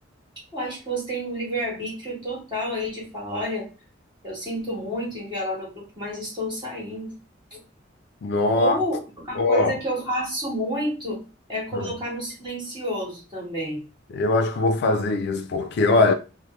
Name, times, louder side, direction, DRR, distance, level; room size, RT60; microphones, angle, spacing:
voice 1, 0.5-3.7 4.2-7.1 7.5-7.6 8.5-9.0 9.3-11.2 11.5-13.8, equal, 25° right, 1.6 m, -29 dB
voice 2, 8.2-8.8 9.4-9.8 11.7-11.9 14.1-16.1, left 3 dB, 60° left, 0.3 m, -21 dB
3.0 x 2.0 x 3.1 m
head